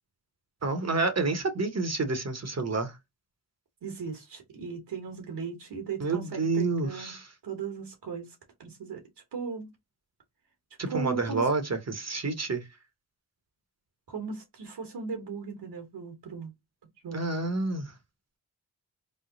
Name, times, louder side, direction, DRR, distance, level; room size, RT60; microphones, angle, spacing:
voice 1, 0.6-3.0 6.0-7.3 10.8-12.6 17.1-17.9, right 3 dB, 40° right, 0.9 m, -29 dB
voice 2, 3.8-7.1 7.4-8.3 8.6-9.0 9.3-9.7 10.9-11.5 14.1-16.5 17.0-17.2, right 5 dB, 75° right, 1.2 m, -37 dB
3.2 x 2.0 x 3.8 m
supercardioid pair, 40°, 41 cm